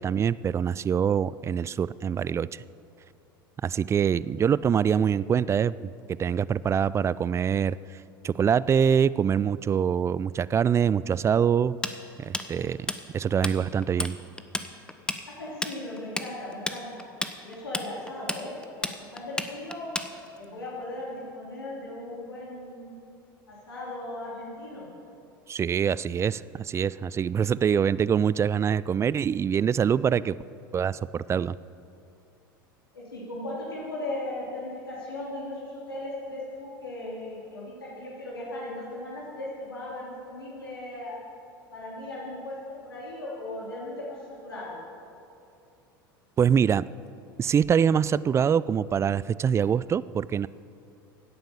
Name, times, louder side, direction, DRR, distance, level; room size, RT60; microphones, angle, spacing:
voice 1, 0.0-2.6 3.6-8.0 8.2-11.7 12.2-12.9 13.1-14.2 25.5-30.4 30.7-31.6 46.4-46.9 47.4-50.5, right 7 dB, 25° right, 19 dB, 0.3 m, -24 dB
Tools, 11.8-13.6 13.8-14.1 14.4-20.5, left 2 dB, 5° left, 0.9 m, -31 dB
voice 2, 15.4-17.0 17.4-19.9 20.3-22.9 23.5-24.9 32.9-41.2 41.7-42.5 42.8-44.8, left 1 dB, 85° left, -6 dB, 3.2 m, -37 dB
17.0 x 9.0 x 7.0 m, 2.7 s
hypercardioid pair, 80°, 12 cm